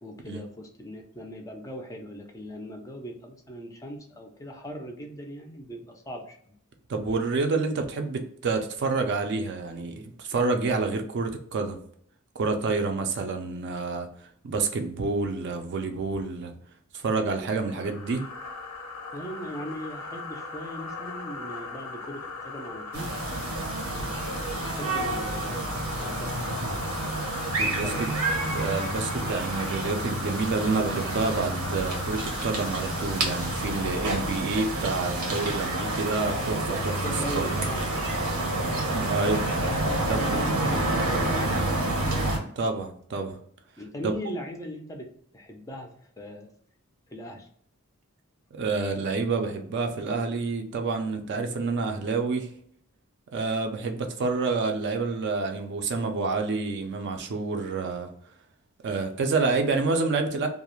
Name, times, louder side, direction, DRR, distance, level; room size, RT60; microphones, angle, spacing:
voice 1, 0.0-6.4 19.1-23.1 23.9-26.4 27.6-28.1 35.9-38.3 39.8-42.0 43.8-45.1 45.3-45.9 46.2-46.5 47.1-47.5, equal, 15° left, 3 dB, 0.4 m, -39 dB
voice 2, 6.9-11.8 12.4-14.1 14.4-16.6 16.9-18.2 27.6-27.9 28.5-36.9 37.3-37.4 38.9-39.4 40.0-40.2 42.6-43.4 44.0-44.1 48.5-52.5 53.3-58.1 58.8-60.5, right 3 dB, 55° right, 5 dB, 0.4 m, -28 dB
sound 1, 17.6-34.6, left 3 dB, 85° left, 0.5 m, -39 dB
sound 2, 22.9-42.4, right 2 dB, 85° right, 0.8 m, -29 dB
2.3 x 2.0 x 2.9 m, 0.64 s
head